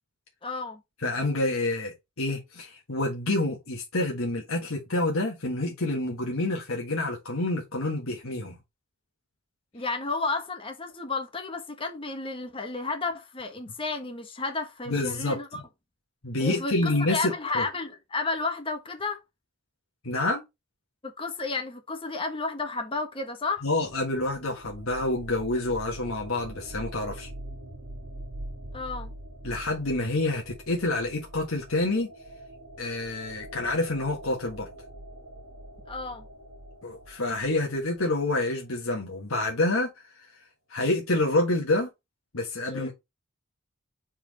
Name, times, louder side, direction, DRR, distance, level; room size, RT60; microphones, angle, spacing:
voice 1, 0.4-0.8 9.7-15.6 16.4-19.2 21.0-23.7 28.7-29.1 35.9-36.3 42.7-42.9, left 3 dB, 25° left, 1.3 m, -32 dB
voice 2, 1.0-8.6 14.9-15.6 16.2-17.7 20.0-20.4 23.6-27.3 29.4-32.1 32.8-34.7 36.8-40.3 40.7-41.9 42.3-42.9, left 2 dB, 80° left, 1.5 m, -28 dB
sound 1, 23.6-38.4, right 1 dB, 55° right, 1.3 m, -44 dB
4.6 x 4.2 x 5.2 m
head